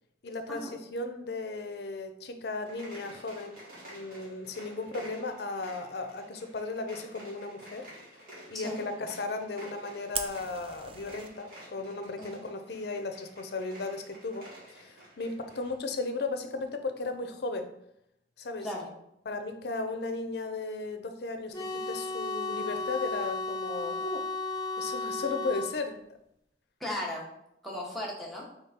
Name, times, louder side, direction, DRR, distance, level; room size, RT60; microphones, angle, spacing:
voice 1, 0.2-3.6 3.9-7.9 8.5-17.7 18.4-18.7 19.3-24.3 24.8-26.0, left 3 dB, 60° left, 8 dB, 0.5 m, -36 dB
sound 1, 2.6-15.8, right 1 dB, 55° right, 1.6 m, -51 dB
Fire, 10.1-11.3, right 7 dB, 30° right, 0.4 m, -38 dB
voice 2, 18.6-18.9 26.8-27.3 27.6-28.4, left 1 dB, ahead, -4 dB, 1.0 m, -36 dB
sound 2, 21.5-25.7, left 3 dB, 25° left, 1.0 m, -34 dB
3.7 x 3.4 x 4.2 m, 0.79 s
head